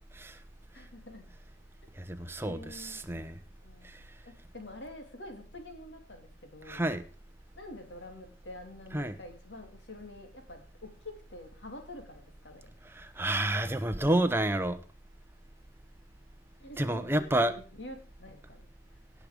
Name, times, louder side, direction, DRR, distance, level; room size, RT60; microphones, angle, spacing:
voice 1, 0.7-1.2 2.4-3.0 3.6-6.8 7.6-12.6 16.6-18.6, left 1 dB, 80° left, 4 dB, 3.0 m, -47 dB
voice 2, 2.0-3.4 3.8-4.0 6.7-7.0 8.9-9.2 13.0-14.8 16.8-17.5, right 1 dB, 15° right, 9 dB, 0.8 m, -29 dB
17.0 x 6.3 x 5.2 m, 0.37 s
head